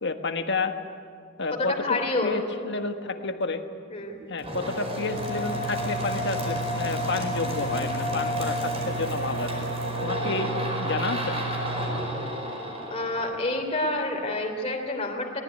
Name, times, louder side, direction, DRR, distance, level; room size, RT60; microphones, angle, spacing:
voice 1, 0.0-0.7 1.4-3.6 4.3-9.7 10.0-11.4, left 3 dB, 60° left, 6 dB, 1.5 m, -30 dB
voice 2, 1.5-2.4 3.9-4.2 12.9-15.4, left 2 dB, 30° left, 2 dB, 3.2 m, -28 dB
sound 1, 4.4-14.0, equal, 30° right, 5.0 m, -30 dB
22.5 x 19.0 x 9.7 m, 2.2 s
head